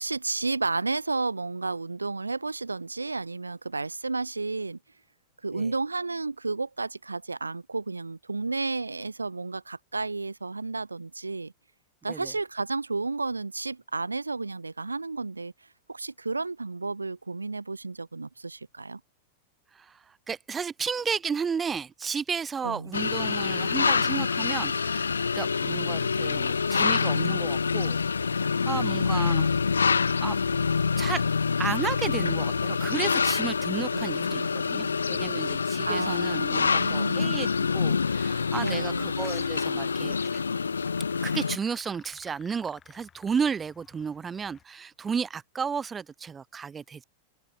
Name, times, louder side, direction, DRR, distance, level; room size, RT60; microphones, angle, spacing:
voice 1, 0.0-4.8 5.4-11.5 12.0-15.5 15.9-19.0 22.6-22.9 28.8-29.1 31.7-32.0 33.9-34.9 35.8-37.4 38.6-39.1, right 3 dB, 85° right, 1.1 m, -32 dB
voice 2, 19.7-28.0 28.7-29.5 30.2-30.4 31.0-31.2 31.6-40.2 41.2-47.0, right 6 dB, 20° right, 4.3 m, -33 dB
sound 1, 22.9-41.6, left 5 dB, 80° left, 1.1 m, -26 dB
sound 2, 38.5-44.6, left 8 dB, 25° left, 6.9 m, -54 dB
open air
figure-of-eight pair, 95°, 0 cm